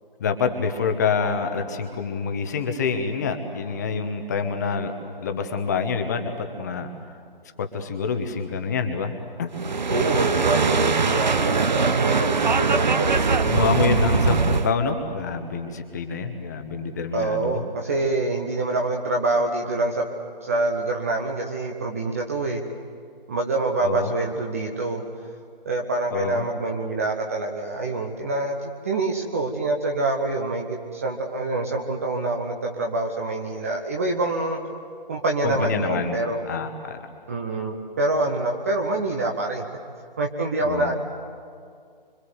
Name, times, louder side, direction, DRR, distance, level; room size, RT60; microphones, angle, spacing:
voice 1, 0.2-4.9 5.2-6.9 7.6-9.1 9.4-9.5 13.5-17.6 23.8-24.1 26.1-26.5 35.4-36.2 36.5-37.0 40.6-40.9, left 5 dB, 20° left, 6 dB, 1.2 m, -26 dB
sound 1, 9.5-14.7, right 4 dB, 50° right, 1.0 m, -21 dB
voice 2, 9.9-13.6 17.1-20.1 20.4-22.6 23.3-25.0 25.6-34.6 35.1-36.4 37.3-39.7 40.2-40.9, right 2 dB, 15° right, 2 dB, 0.8 m, -26 dB
25.0 x 25.0 x 8.1 m, 2.2 s
figure-of-eight pair, 155°, 29 cm